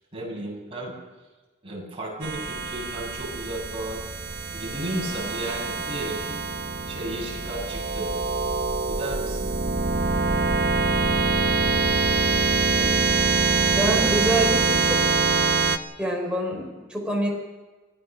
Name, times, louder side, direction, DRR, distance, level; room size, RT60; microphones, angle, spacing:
voice 1, 0.1-0.9 1.6-4.0 4.5-6.4 6.9-8.1 8.9-9.5, right 1 dB, 30° right, -3 dB, 8.0 m, -33 dB
sound 1, 2.2-15.8, right 4 dB, 60° right, 1.1 m, -24 dB
voice 2, 13.7-15.0 16.0-17.3, right 1 dB, 5° right, -1 dB, 5.1 m, -26 dB
24.5 x 17.5 x 6.5 m, 1.2 s
head